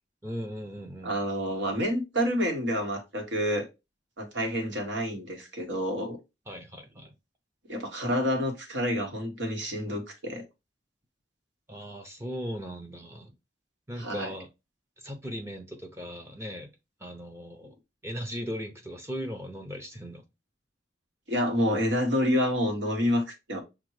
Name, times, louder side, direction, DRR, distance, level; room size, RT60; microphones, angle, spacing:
voice 1, 0.2-1.2 6.5-7.1 11.7-13.3 13.9-14.5 15.0-16.7 17.0-17.8 18.0-20.2, equal, 15° right, 0.5 m, -38 dB
voice 2, 1.0-3.7 4.2-6.2 7.7-10.4 14.0-14.3 21.3-23.6, equal, 90° right, 1.1 m, -28 dB
5.9 x 2.1 x 3.1 m
head